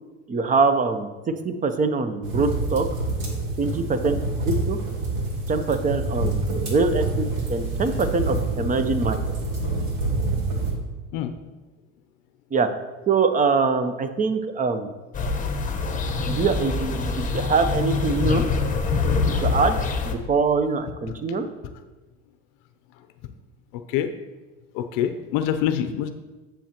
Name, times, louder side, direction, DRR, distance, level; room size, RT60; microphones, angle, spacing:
voice 1, 0.3-1.1 1.4-2.9 3.6-4.2 4.4-4.8 5.5-9.2 12.5-12.7 13.1-14.9 16.3-18.4 19.4-19.8 20.0-21.5, right 4 dB, 20° right, 9 dB, 0.7 m, -23 dB
sound 1, 2.2-10.7, right 2 dB, 80° right, 2.7 m, -27 dB
sound 2, 15.1-20.1, left 4 dB, 20° left, 1.0 m, -24 dB
voice 2, 23.7-24.1 24.7-26.1, left 10 dB, 65° left, 9 dB, 0.6 m, -25 dB
10.5 x 7.1 x 2.9 m, 1.2 s
supercardioid pair, 105°, 35 cm